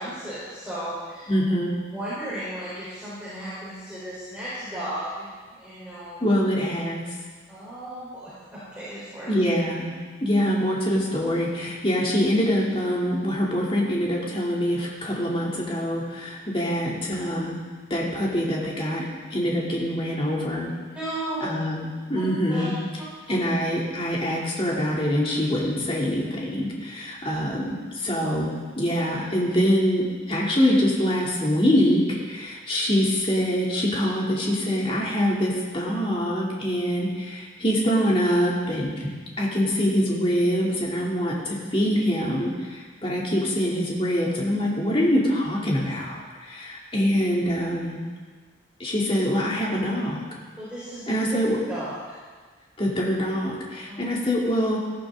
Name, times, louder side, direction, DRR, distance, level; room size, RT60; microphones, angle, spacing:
voice 1, 0.0-1.3 1.9-6.3 7.5-9.3 20.9-21.5 22.2-22.3 22.5-22.7 23.3-23.4 50.6-51.0 51.7-52.0 53.9-54.1, right 1 dB, 5° right, -11 dB, 4.2 m, -35 dB
voice 2, 1.3-1.8 6.2-7.1 9.3-9.9 10.2-17.6 17.9-20.7 21.4-22.7 23.3-39.1 39.4-48.0 48.8-50.2 51.1-51.6 52.8-54.8, equal, 30° left, -4 dB, 3.0 m, -24 dB
18.5 x 14.0 x 3.9 m, 1.5 s
head